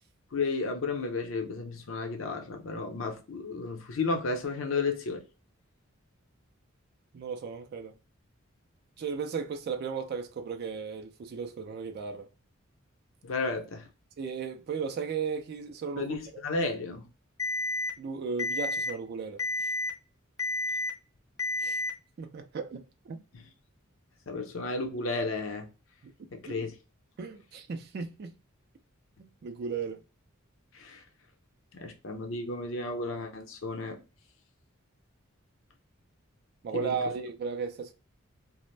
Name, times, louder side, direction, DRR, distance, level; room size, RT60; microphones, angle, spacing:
voice 1, 0.3-5.2 13.2-13.9 16.0-17.1 23.3-23.4 24.3-25.7 26.3-26.7 30.7-31.0 31.7-34.0 36.7-37.0, left 3 dB, 70° left, 0.6 m, -33 dB
voice 2, 7.1-7.9 9.0-12.3 14.2-16.2 18.0-19.7 21.6-21.8 22.2-23.2 26.0-26.1 26.4-26.5 27.2-28.3 29.2-30.0 36.6-37.9, right 5 dB, 50° right, 0.3 m, -35 dB
Alarm, 17.4-17.9 18.4-18.9 19.4-19.9 20.4-20.9 21.4-21.9, left 2 dB, 15° left, 0.5 m, -30 dB
2.5 x 2.0 x 3.1 m
head